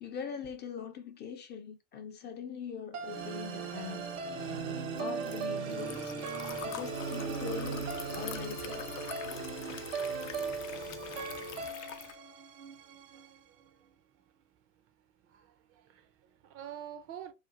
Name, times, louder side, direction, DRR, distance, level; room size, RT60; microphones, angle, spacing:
voice 1, 0.0-4.1 5.0-6.1 6.6-7.9 8.1-8.9, left 7 dB, 30° left, 0.4 m, -42 dB
sound 1, 2.9-13.2, right 5 dB, 85° right, 0.8 m, -38 dB
Liquid, 3.9-12.2, left 10 dB, 85° left, 0.5 m, -46 dB
Telephone, 6.5-11.7, left 1 dB, 50° left, 0.8 m, -45 dB
voice 2, 10.9-11.3 11.7-12.1 13.1-13.6 15.3-17.3, right 10 dB, 40° right, 0.5 m, -48 dB
2.5 x 2.2 x 2.9 m
hypercardioid pair, 100°, 36 cm